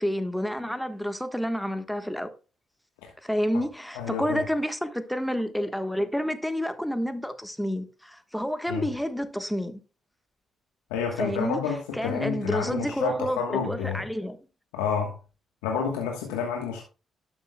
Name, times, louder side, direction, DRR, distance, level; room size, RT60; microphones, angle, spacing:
voice 1, 0.0-2.3 3.2-9.8 11.2-11.6 11.9-14.4, equal, 5° left, 1.3 m, -29 dB
voice 2, 3.9-4.4 8.7-8.9 10.9-14.0 14.7-15.1 15.6-16.8, left 6 dB, 85° left, 1.2 m, -29 dB
12.0 x 7.2 x 2.3 m
hypercardioid pair, 50°, 0 cm